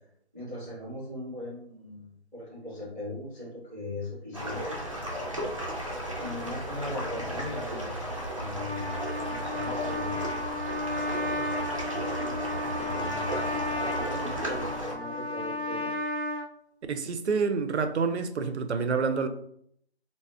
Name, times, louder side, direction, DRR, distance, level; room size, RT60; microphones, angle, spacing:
voice 1, 0.3-4.7 5.3-5.4 6.2-7.9 8.3-10.2 12.6-15.9, left 1 dB, ahead, 1.2 m, -39 dB
sound 1, 4.3-14.9, right 1 dB, 30° right, 0.5 m, -34 dB
Trumpet, 8.4-16.5, left 1 dB, 55° left, 1.2 m, -33 dB
voice 2, 16.9-19.3, right 5 dB, 90° right, 0.5 m, -28 dB
3.5 x 2.1 x 2.3 m
figure-of-eight pair, 170°, 33 cm